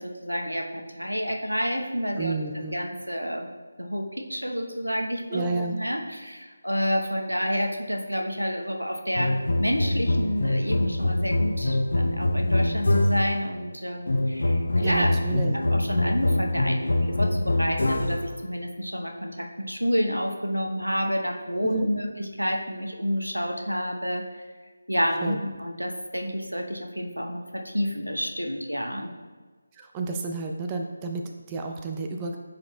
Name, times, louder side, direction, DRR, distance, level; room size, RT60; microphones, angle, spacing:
voice 1, 0.0-3.5 3.8-15.1 15.7-24.4 24.9-29.1, equal, 90° right, 3 dB, 0.9 m, -29 dB
voice 2, 2.2-2.8 5.3-5.8 14.8-15.6 15.8-16.2 21.6-21.9 25.2-25.4 29.7-32.4, right 3 dB, 15° right, 2 dB, 0.4 m, -31 dB
sound 1, 9.1-13.4 14.1-18.3, left 1 dB, 60° left, 0.7 m, -24 dB
11.5 x 4.0 x 2.3 m, 1.4 s
figure-of-eight pair, 155°, 0 cm